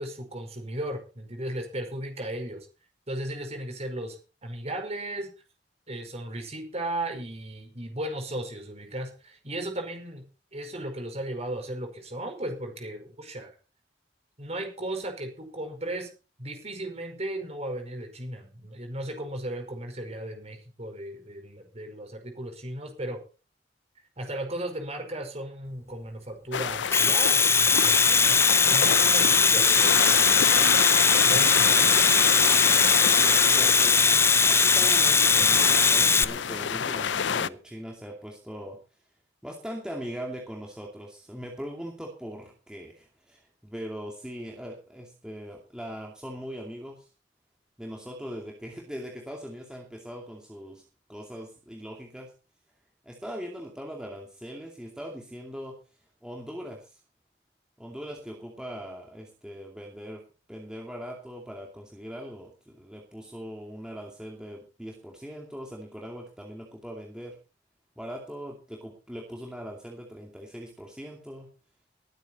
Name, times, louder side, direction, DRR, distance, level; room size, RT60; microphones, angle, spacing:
voice 1, 0.0-2.7 3.1-4.2 4.4-5.3 5.9-10.2 10.5-13.5 14.4-16.1 16.4-23.2 24.2-28.4 28.6-30.0 30.7-32.1, right 1 dB, 35° right, 4 dB, 5.1 m, -36 dB
sound 1, 26.5-37.5, left 7 dB, 70° left, 0.6 m, -28 dB
Domestic sounds home sounds, 26.7-36.2, left 4 dB, 15° left, 0.6 m, -20 dB
voice 2, 33.0-34.2 34.5-38.8 39.4-47.1 47.8-50.8 51.1-52.3 53.1-55.7 56.2-57.0 57.8-60.2 60.5-67.4 68.0-71.5, equal, 5° right, 0 dB, 2.5 m, -40 dB
20.0 x 9.2 x 4.3 m, 0.33 s
head